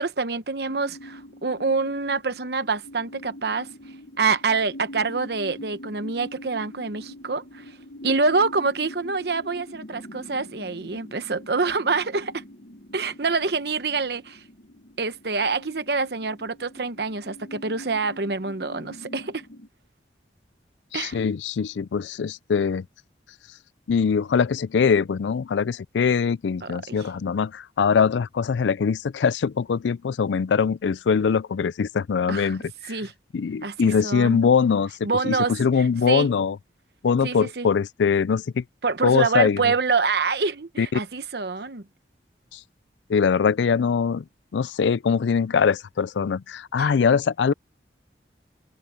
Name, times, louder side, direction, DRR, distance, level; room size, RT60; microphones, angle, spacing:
voice 1, 0.0-3.7 4.2-7.7 8.0-12.4 12.9-14.4 15.0-19.4 20.9-21.2 26.6-27.1 32.3-32.6 32.9-33.1 33.6-34.4 35.0-36.3 37.2-37.7 38.8-41.8 46.8-46.9, right 4 dB, 65° right, 1.0 m, -26 dB
sound 1, 0.7-19.7, left 1 dB, 55° left, 1.1 m, -44 dB
voice 2, 20.9-22.8 23.9-33.0 33.3-36.6 37.0-38.6 39.0-39.6 40.8-41.0 42.5-42.6 43.1-44.2 44.5-47.5, left 6 dB, 85° left, 0.4 m, -22 dB
head